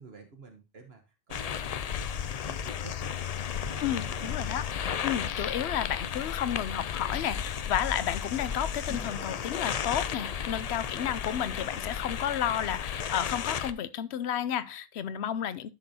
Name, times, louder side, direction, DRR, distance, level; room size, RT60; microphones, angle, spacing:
voice 1, 0.0-3.1 3.4-4.3 10.5-11.0, right 4 dB, 70° right, 1.5 m, -50 dB
sound 1, 1.3-13.7, left 8 dB, 50° left, 0.5 m, -34 dB
voice 2, 3.8-4.6 5.0-15.7, left 10 dB, 80° left, 0.9 m, -32 dB
sound 2, 8.8-11.2, equal, 5° left, 0.7 m, -49 dB
11.5 x 6.2 x 2.8 m
omnidirectional pair, 1.1 m